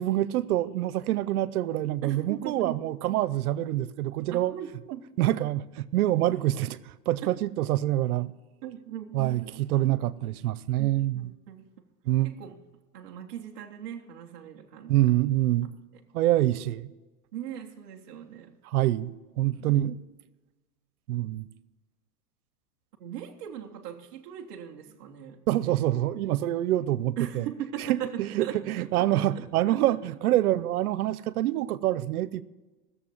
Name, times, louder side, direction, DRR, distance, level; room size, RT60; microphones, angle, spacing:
voice 1, 0.0-4.5 5.2-8.3 9.1-11.3 12.1-12.4 14.9-15.7 16.1-16.9 18.6-20.0 21.1-21.4 25.5-27.5 27.9-32.4, right 14 dB, 70° right, 0.7 m, -26 dB
voice 2, 2.0-2.8 3.0-3.2 4.3-5.1 8.6-9.6 10.8-11.7 12.2-12.6 12.9-15.1 17.3-18.6 23.0-25.4 27.2-29.8, right 10 dB, 15° right, 0.3 m, -39 dB
17.0 x 6.9 x 7.3 m
supercardioid pair, 155°, 46 cm